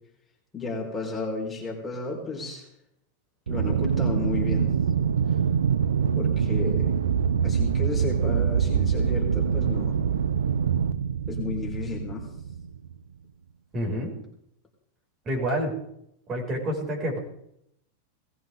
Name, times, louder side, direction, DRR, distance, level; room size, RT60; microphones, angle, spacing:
voice 1, 0.5-2.7 3.5-4.7 6.2-6.9 7.4-10.0 11.3-12.3, left 3 dB, 15° left, -2 dB, 4.9 m, -33 dB
Aircraft, 3.5-12.9, right 7 dB, 85° right, 0.7 m, -24 dB
voice 2, 13.7-14.1 15.2-15.7 16.3-17.2, equal, 30° right, -1 dB, 6.2 m, -28 dB
19.0 x 15.5 x 3.8 m, 0.76 s
hypercardioid pair, 110°, 0 cm